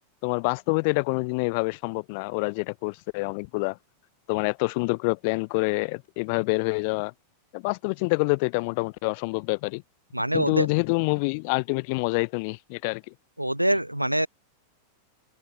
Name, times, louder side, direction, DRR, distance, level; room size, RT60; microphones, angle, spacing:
voice 1, 0.2-3.8 4.3-7.1 7.5-9.8 10.3-13.0, left 31 dB, 45° left, 0.9 m, -26 dB
voice 2, 10.1-10.7 13.4-14.3, right 1 dB, 90° right, 0.7 m, -24 dB
open air
figure-of-eight pair, 90°, 0 cm